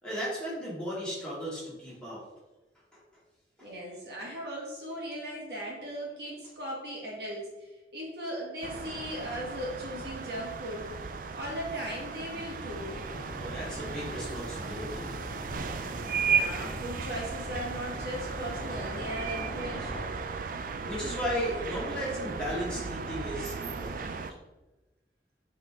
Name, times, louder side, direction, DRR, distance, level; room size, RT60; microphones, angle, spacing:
voice 1, 0.0-2.2 3.6-3.7 13.4-15.1 20.8-24.2, equal, 5° left, -8 dB, 2.2 m, -35 dB
voice 2, 3.6-7.5 7.9-10.9 11.3-12.9 16.1-20.1, equal, 65° right, -2 dB, 1.6 m, -38 dB
sound 1, 8.6-24.3, right 5 dB, 50° right, 0.3 m, -35 dB
sound 2, 12.7-20.0, equal, 25° left, 1.5 m, -42 dB
7.8 x 3.7 x 3.6 m, 1.1 s
head